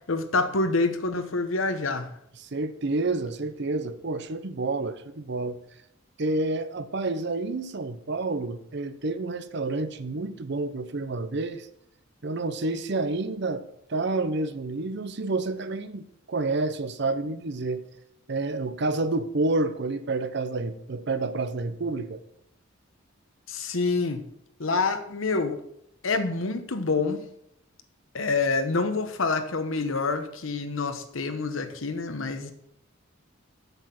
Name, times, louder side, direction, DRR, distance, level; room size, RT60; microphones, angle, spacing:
voice 1, 0.1-2.1 23.5-24.2 24.6-25.6 26.0-27.2 28.1-32.5, left 3 dB, 80° left, 1.0 m, -27 dB
voice 2, 2.4-5.6 6.2-11.7 12.2-13.6 13.9-17.8 18.3-22.2, right 3 dB, 55° right, 0.7 m, -29 dB
8.0 x 7.4 x 5.9 m
head